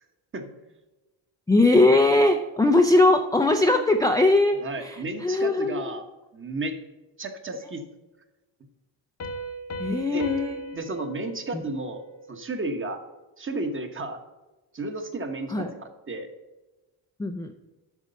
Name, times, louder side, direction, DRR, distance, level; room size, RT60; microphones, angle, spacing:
voice 1, 1.5-6.0 9.8-10.6 11.5-11.6 15.5-15.7 17.2-17.5, left 2 dB, 10° left, 4 dB, 0.4 m, -20 dB
voice 2, 4.6-6.0 6.3-6.8 7.2-7.8 10.1-10.3 10.7-12.0 12.3-13.0 13.4-14.2 14.7-16.3, right 2 dB, 25° right, 7 dB, 1.1 m, -32 dB
Piano, 9.2-12.6, right 2 dB, 35° left, 0.9 m, -38 dB
8.2 x 6.0 x 5.4 m, 1.1 s
cardioid pair, 120°, 45 cm